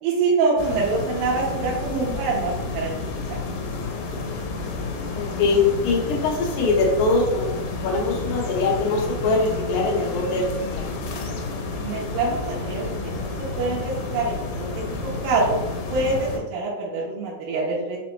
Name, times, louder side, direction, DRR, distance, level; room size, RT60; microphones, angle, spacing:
voice 1, 0.0-2.9 3.3-3.4 11.8-13.3 13.6-14.7 14.9-15.6 15.9-18.0, right 3 dB, 90° right, -4 dB, 2.3 m, -25 dB
sound 1, 0.6-16.4, left 3 dB, 90° left, 2.4 m, -30 dB
voice 2, 5.1-7.5 7.8-10.8, left 3 dB, 70° left, -2 dB, 2.1 m, -22 dB
5.8 x 2.1 x 3.0 m, 1.1 s
omnidirectional pair, 4.0 m